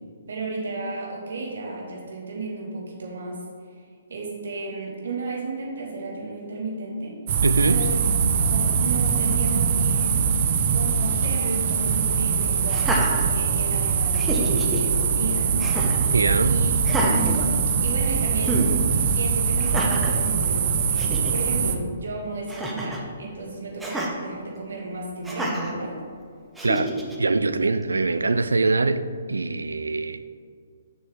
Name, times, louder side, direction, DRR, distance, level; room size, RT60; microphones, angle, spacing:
voice 1, 0.3-3.4 4.1-7.2 7.6-8.0 8.4-10.3 10.7-16.1 16.4-17.5 17.8-18.8 19.1-26.0, right 3 dB, 70° right, -1 dB, 1.8 m, -33 dB
sound 1, 7.3-21.8, right 6 dB, 50° right, 0.6 m, -22 dB
voice 2, 7.4-7.8 16.1-16.6 26.6-30.3, right 3 dB, 85° right, 12 dB, 0.4 m, -23 dB
Laughter, 12.7-13.8 14.1-14.8 15.6-16.1 16.8-18.0 18.4-18.7 19.6-20.2 20.7-20.8 21.0-21.3 22.5-23.1 23.8-24.1 25.2-25.7 26.6-27.2, right 1 dB, 5° right, 0.9 m, -28 dB
6.8 x 6.3 x 3.6 m, 2.1 s
hypercardioid pair, 135°, 0 cm